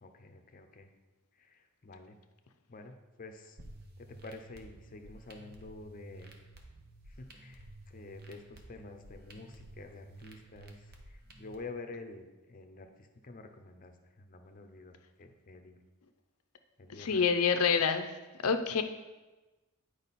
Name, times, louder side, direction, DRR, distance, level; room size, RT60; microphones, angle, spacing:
voice 1, 0.0-0.9 1.3-2.2 2.7-3.6 4.0-6.3 7.1-15.8 16.8-17.2, left 3 dB, 40° left, 5 dB, 0.7 m, -49 dB
sound 1, 3.6-11.6, right 1 dB, 45° right, 0.9 m, -53 dB
voice 2, 17.0-18.1 18.4-18.8, left 6 dB, 75° left, 8 dB, 0.6 m, -27 dB
8.9 x 4.9 x 4.1 m, 1.1 s
head